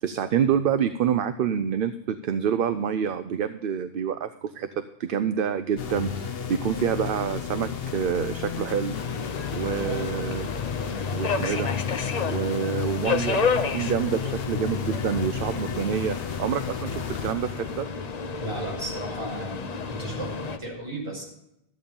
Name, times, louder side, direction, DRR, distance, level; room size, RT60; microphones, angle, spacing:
voice 1, 0.0-9.0 9.5-10.5 11.1-11.7 12.3-17.5 17.8-17.9, right 8 dB, 65° right, 11 dB, 0.7 m, -27 dB
sound 1, 5.8-17.8, left 7 dB, 65° left, 1.0 m, -33 dB
Subway metro underground, 8.9-20.6, left 5 dB, 45° left, 0.8 m, -31 dB
voice 2, 18.4-21.2, right 1 dB, 25° right, -3 dB, 5.4 m, -35 dB
13.5 x 8.6 x 5.3 m, 0.82 s
omnidirectional pair, 1.1 m